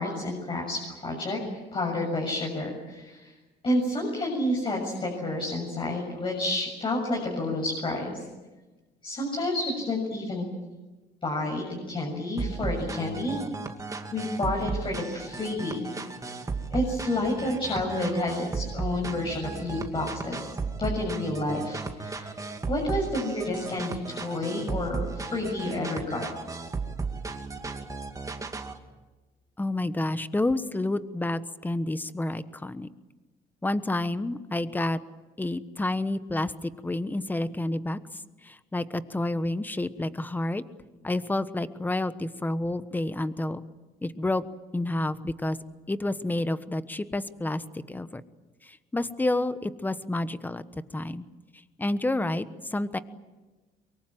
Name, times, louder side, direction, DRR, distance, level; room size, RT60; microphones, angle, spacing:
voice 1, 0.0-1.4 1.7-3.3 3.6-8.2 9.0-10.4 11.2-13.4 14.1-15.9 16.7-20.5 20.8-22.4 22.7-26.3, left 1 dB, 30° left, 0 dB, 7.0 m, -30 dB
sound 1, 12.4-28.8, right 4 dB, 20° right, 2.3 m, -35 dB
voice 2, 29.6-32.9 33.6-35.0 35.4-40.6 41.0-43.6 44.0-44.4 44.7-45.6 45.9-48.2 48.6-51.3 51.8-53.0, left 2 dB, 10° left, 13 dB, 1.2 m, -29 dB
23.5 x 23.5 x 9.1 m, 1.2 s
cardioid pair, 110°, 17 cm